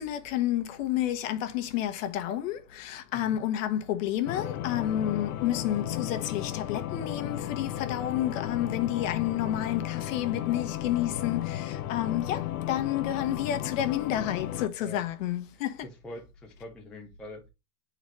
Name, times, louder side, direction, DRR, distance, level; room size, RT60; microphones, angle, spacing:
voice 1, 0.0-11.6 11.9-12.4 12.7-15.7, left 12 dB, 60° left, 1.1 m, -30 dB
sound 1, 4.3-14.7, left 12 dB, 75° left, 0.8 m, -34 dB
voice 2, 15.8-17.5, left 1 dB, ahead, 0.4 m, -44 dB
8.8 x 4.0 x 3.1 m
supercardioid pair, 140°, 44 cm